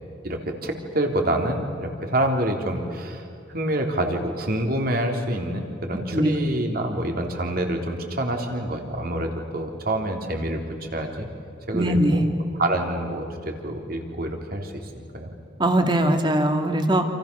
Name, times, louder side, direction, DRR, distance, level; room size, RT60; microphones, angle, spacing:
voice 1, 0.2-3.2 3.5-10.6 10.9-11.3 11.7-12.3 12.6-15.3, right 1 dB, 50° right, 3 dB, 3.6 m, -27 dB
voice 2, 11.7-12.2 15.6-17.0, right 1 dB, 25° right, 5 dB, 2.4 m, -21 dB
28.5 x 28.0 x 7.0 m, 2.6 s
head